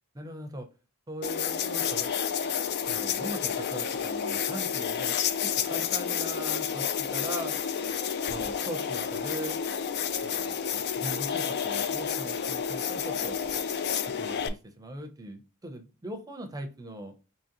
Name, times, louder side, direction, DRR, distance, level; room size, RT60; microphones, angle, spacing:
voice 1, 0.1-0.7 1.1-2.1 2.9-5.2 5.4-7.6 8.3-9.6 10.2-13.4 14.2-17.1, right 1 dB, 15° right, 5 dB, 0.6 m, -40 dB
sound 1, 1.2-14.5, left 7 dB, 50° left, 0.3 m, -30 dB
3.8 x 3.0 x 2.9 m, 0.32 s
head